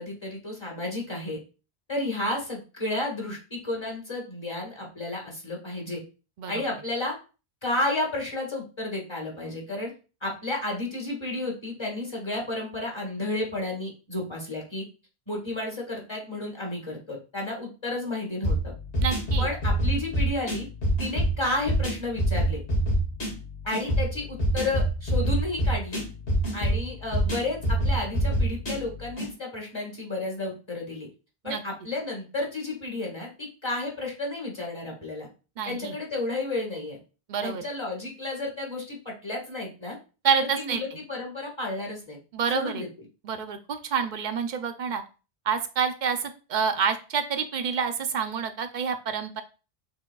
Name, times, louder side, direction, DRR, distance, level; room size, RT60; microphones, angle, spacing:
voice 1, 0.0-1.4 1.9-6.0 6.5-7.1 7.6-9.9 10.2-14.8 15.3-18.7 19.4-20.7 21.0-22.6 23.6-26.0 26.5-31.1 31.4-35.3 35.6-37.0 37.4-40.0 40.4-42.2 42.5-42.9, left 2 dB, 25° left, -1 dB, 1.5 m, -32 dB
sound 1, 18.4-29.3, right 1 dB, 90° left, 2.2 m, -26 dB
voice 2, 19.0-19.5 31.4-31.6 35.6-36.0 37.3-37.6 40.2-40.8 42.3-42.8 43.2-45.0 45.5-49.4, right 6 dB, 55° right, 8 dB, 0.6 m, -28 dB
6.3 x 3.4 x 2.3 m, 0.33 s
omnidirectional pair, 1.1 m